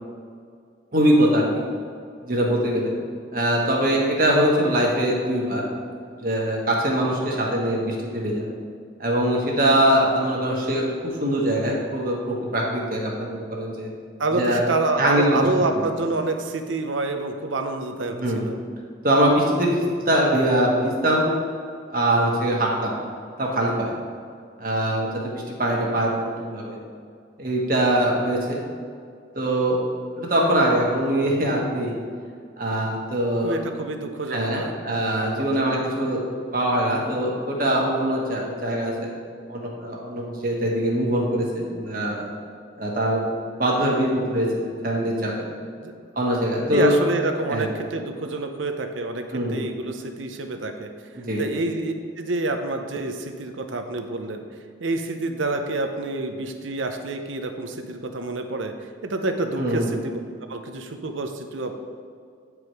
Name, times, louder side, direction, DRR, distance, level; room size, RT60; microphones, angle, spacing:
voice 1, 0.9-1.6 2.2-2.9 3.3-5.6 6.2-8.5 9.0-10.9 11.2-13.9 14.3-14.6 15.0-15.4 18.1-18.4 19.0-21.3 21.9-22.9 23.4-24.0 24.6-26.8 27.4-28.6 29.3-29.8 30.2-32.0 32.6-33.6 34.3-36.2 36.5-39.1 39.5-42.3 42.8-43.2 43.6-45.4 46.1-46.9 47.5-47.7 49.3-49.5 51.2-51.4 59.6-59.9, right 1 dB, 45° right, -2 dB, 1.4 m, -22 dB
voice 2, 14.2-18.6 33.4-34.7 35.0-35.9 45.8-45.9 46.7-49.2 49.5-50.9 51.4-54.4 54.8-60.2 60.5-61.7, right 2 dB, 90° right, 6 dB, 0.7 m, -28 dB
9.0 x 4.9 x 4.8 m, 2.2 s
head